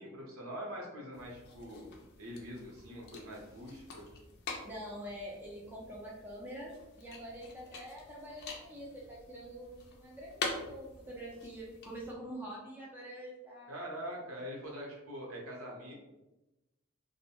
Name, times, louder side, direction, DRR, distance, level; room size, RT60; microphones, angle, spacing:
voice 1, 0.0-1.9 2.2-4.1 13.7-15.9, equal, 70° right, -2 dB, 0.8 m, -44 dB
sound 1, 1.1-12.1, left 3 dB, 50° left, 0.4 m, -46 dB
voice 2, 4.6-13.7, equal, 10° right, -4 dB, 0.4 m, -45 dB
2.6 x 2.1 x 2.9 m, 1.0 s
head